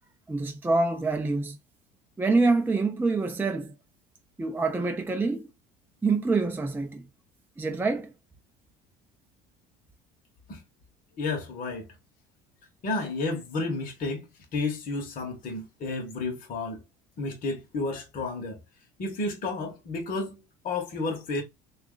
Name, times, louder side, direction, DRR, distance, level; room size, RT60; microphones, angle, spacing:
voice 1, 0.3-1.6 2.2-3.7 4.4-5.5 6.0-7.1 7.6-8.1, right 3 dB, 10° right, 0.5 m, -26 dB
voice 2, 11.2-11.9 12.8-16.8 17.2-18.6 19.0-21.4, left 3 dB, 45° left, 1.0 m, -31 dB
2.9 x 2.4 x 3.7 m
hypercardioid pair, 75°, 20 cm